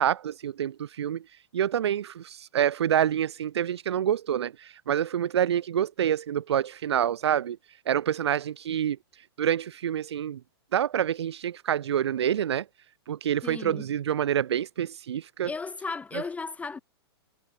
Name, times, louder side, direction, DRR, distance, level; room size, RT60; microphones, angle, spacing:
voice 1, 0.0-10.4 10.7-12.6 13.1-15.5, right 10 dB, 80° right, 0.6 m, -27 dB
voice 2, 13.4-13.9 15.4-16.8, left 4 dB, 10° left, 0.9 m, -35 dB
hypercardioid pair, 130°, 14 cm